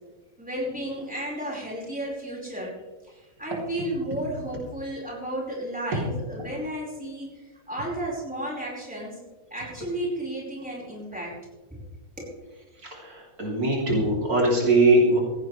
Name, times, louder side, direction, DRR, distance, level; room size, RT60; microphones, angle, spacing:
voice 1, 0.4-2.7 3.4-9.2 9.5-11.3 12.2-12.3, right 1 dB, 5° right, -4 dB, 5.0 m, -33 dB
voice 2, 12.8-15.2, right 2 dB, 75° right, -2 dB, 3.9 m, -21 dB
17.0 x 16.0 x 3.4 m, 1.1 s
omnidirectional pair, 1.6 m